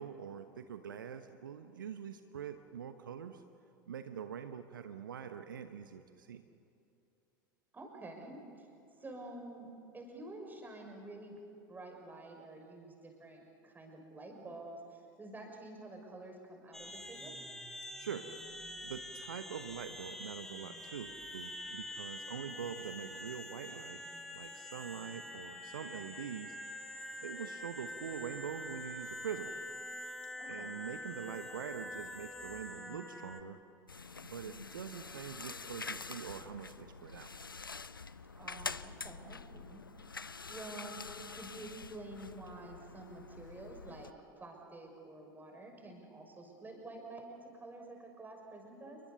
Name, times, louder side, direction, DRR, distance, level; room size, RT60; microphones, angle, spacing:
voice 1, 0.0-3.4 3.9-6.4 18.0-18.5 18.8-24.0 24.3-26.6 27.2-29.5 30.5-33.6 34.2-37.3, right 8 dB, 70° right, 8 dB, 1.1 m, -44 dB
voice 2, 7.7-8.7 9.0-11.4 11.7-17.4 30.4-30.7 38.4-40.1 40.5-41.1 41.3-44.1 44.4-49.0, right 2 dB, 15° right, 2 dB, 6.0 m, -49 dB
sound 1, 16.7-33.4, left 1 dB, 5° left, 2.0 m, -46 dB
sound 2, 33.9-44.1, left 4 dB, 85° left, 0.6 m, -46 dB
28.5 x 23.0 x 7.0 m, 2.7 s
figure-of-eight pair, 75°, 11 cm